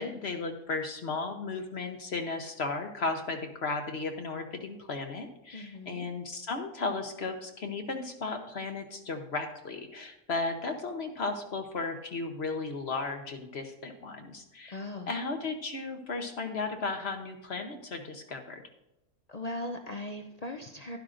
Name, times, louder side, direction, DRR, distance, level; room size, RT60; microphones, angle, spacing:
voice 1, 0.0-14.8 15.1-18.6, left 3 dB, 50° left, 5 dB, 1.0 m, -35 dB
voice 2, 5.5-6.1 14.7-15.1 19.3-21.0, left 1 dB, 70° left, 4 dB, 0.3 m, -39 dB
11.5 x 11.0 x 2.5 m, 0.88 s
omnidirectional pair, 1.6 m